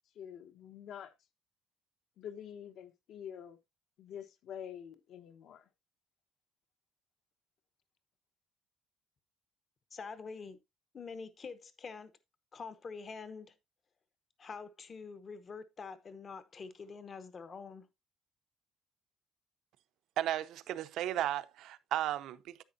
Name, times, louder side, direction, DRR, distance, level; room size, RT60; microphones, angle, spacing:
voice 1, 0.1-1.1 2.2-3.6 4.0-5.7, left 9 dB, 55° left, 1.1 m, -47 dB
voice 2, 9.9-10.6 10.9-12.1 12.5-13.5 14.4-17.9, left 5 dB, 25° left, 0.8 m, -46 dB
voice 3, 20.2-22.6, right 12 dB, 60° right, 0.7 m, -35 dB
10.0 x 8.7 x 2.6 m
cardioid pair, 180°, 0 cm